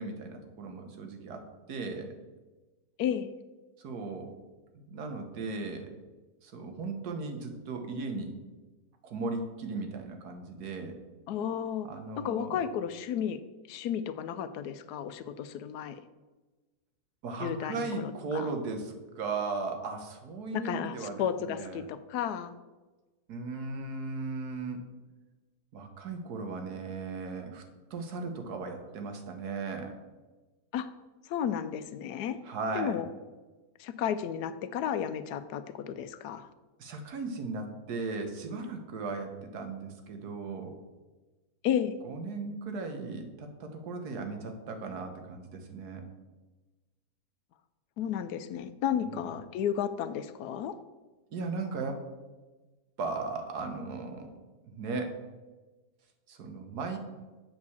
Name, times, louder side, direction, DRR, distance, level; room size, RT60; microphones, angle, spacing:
voice 1, 0.0-2.1 3.8-4.3 4.7-5.9 6.4-8.3 9.0-11.0 11.8-12.6 17.2-21.8 23.3-24.8 25.7-27.6 27.9-30.0 32.4-33.0 36.8-40.8 42.0-46.0 49.0-49.3 51.3-52.1 53.0-54.3 54.6-55.2 56.3-57.0, right 3 dB, 80° right, 5 dB, 1.6 m, -37 dB
voice 2, 3.0-3.3 11.3-11.9 12.2-13.4 13.7-16.0 17.4-18.5 20.5-22.5 30.7-30.9 31.3-32.4 32.7-33.1 33.8-36.5 41.6-42.0 48.0-50.8, left 9 dB, 85° left, 12 dB, 1.1 m, -33 dB
7.5 x 4.8 x 7.0 m, 1.2 s
omnidirectional pair, 1.7 m